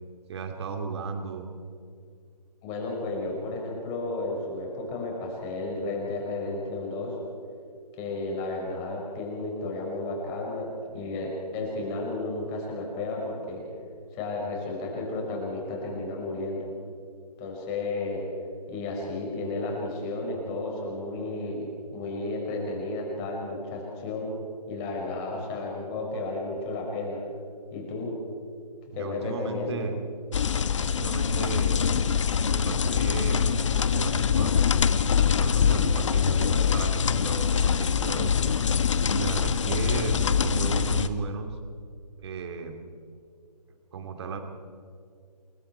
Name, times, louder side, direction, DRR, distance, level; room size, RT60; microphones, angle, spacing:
voice 1, 0.3-1.5 28.9-30.0 30.9-31.9 32.5-34.6 35.4-38.3 39.1-41.6 42.2-42.7 43.9-44.4, right 4 dB, 40° right, 5 dB, 2.6 m, -34 dB
voice 2, 2.6-7.2 8.0-13.7 14.1-16.7 17.4-18.3 18.7-24.3 24.7-27.2 27.7-28.2 29.0-29.8, left 2 dB, 20° left, 0 dB, 5.3 m, -33 dB
sound 1, 30.3-41.1, left 7 dB, 45° left, 1.1 m, -24 dB
28.5 x 21.5 x 4.6 m, 2.3 s
figure-of-eight pair, 150°, 21 cm